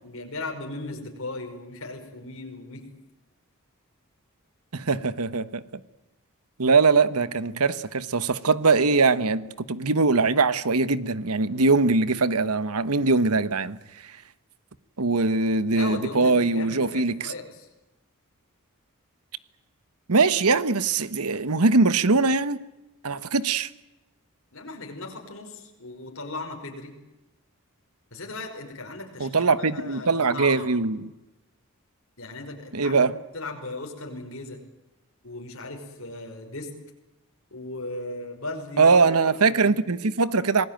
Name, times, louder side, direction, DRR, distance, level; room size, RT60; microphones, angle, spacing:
voice 1, 0.0-2.8 15.7-17.7 24.5-26.9 28.1-30.7 32.2-33.0 33.3-34.6 35.2-36.7 37.5-38.9 39.3-39.8, left 2 dB, 60° left, 5.5 m, -37 dB
voice 2, 4.7-5.6 6.6-13.8 14.0-14.1 15.0-17.3 20.1-22.6 23.0-23.7 29.2-31.1 32.7-33.1 38.8-40.6, right 4 dB, 80° right, 1.2 m, -22 dB
26.5 x 19.5 x 9.1 m
head